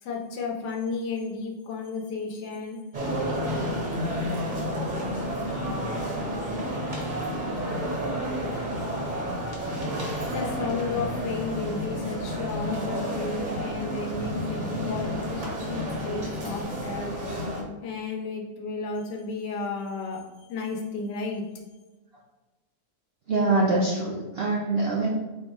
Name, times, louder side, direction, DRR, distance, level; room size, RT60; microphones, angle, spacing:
voice 1, 0.0-2.8 10.3-17.1 17.8-21.5, left 4 dB, 85° left, -1 dB, 1.4 m, -33 dB
sound 1, 2.9-17.6, equal, 40° right, 0.7 m, -30 dB
voice 2, 23.3-25.1, right 2 dB, 70° right, -4 dB, 0.5 m, -24 dB
4.4 x 2.1 x 4.6 m, 1.2 s
omnidirectional pair, 1.8 m